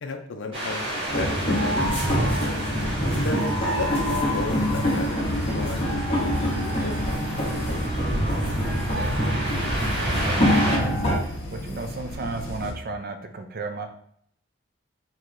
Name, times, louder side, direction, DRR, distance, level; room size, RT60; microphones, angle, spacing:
voice 1, 0.0-2.4 3.0-6.9, left 3 dB, 60° left, 4 dB, 0.4 m, -34 dB
sound 1, 0.5-10.8, right 1 dB, 25° right, 1.1 m, -29 dB
sound 2, 1.1-11.2, equal, 30° left, 0.9 m, -26 dB
sound 3, 3.8-12.7, left 1 dB, 75° left, 0.8 m, -36 dB
voice 2, 8.0-8.4 8.7-9.2 10.1-13.9, right 3 dB, 45° right, 5 dB, 0.4 m, -35 dB
4.5 x 3.0 x 2.5 m, 0.67 s
head